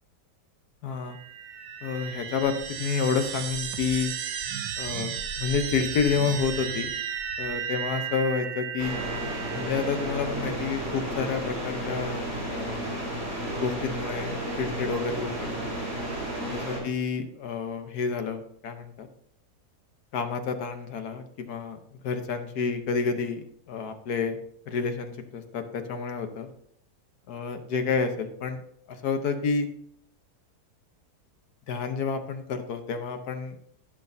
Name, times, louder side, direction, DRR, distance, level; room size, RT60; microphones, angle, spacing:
voice 1, 0.8-1.2 1.8-4.1 4.8-6.9 7.4-9.0 9.6-12.8 13.6-15.3 16.5-19.1 20.1-24.4 24.7-26.5 27.3-28.6 28.9-29.7 31.7-33.6, left 5 dB, 65° left, 7 dB, 1.4 m, -29 dB
sound 1, 1.1-10.3, right 7 dB, 80° right, 1.4 m, -34 dB
sound 2, 8.8-16.8, right 1 dB, 65° right, 5.1 m, -32 dB
16.0 x 6.3 x 2.7 m, 0.68 s
omnidirectional pair, 1.8 m